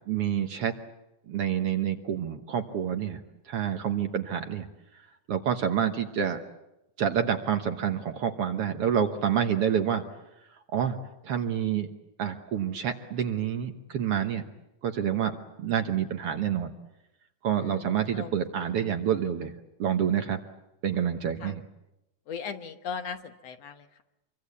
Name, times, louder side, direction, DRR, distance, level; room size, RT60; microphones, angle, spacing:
voice 1, 0.1-0.8 1.3-3.2 3.5-4.7 5.3-6.4 7.0-10.0 10.7-11.0 11.2-11.9 12.2-14.4 14.8-15.3 15.6-16.7 17.4-19.5 19.8-20.4 20.8-21.6, right 9 dB, 60° right, 7 dB, 1.8 m, -28 dB
voice 2, 17.6-18.3 21.4-21.5 22.3-24.0, left 6 dB, 65° left, 8 dB, 2.1 m, -38 dB
26.5 x 23.5 x 8.4 m, 0.91 s
omnidirectional pair, 3.5 m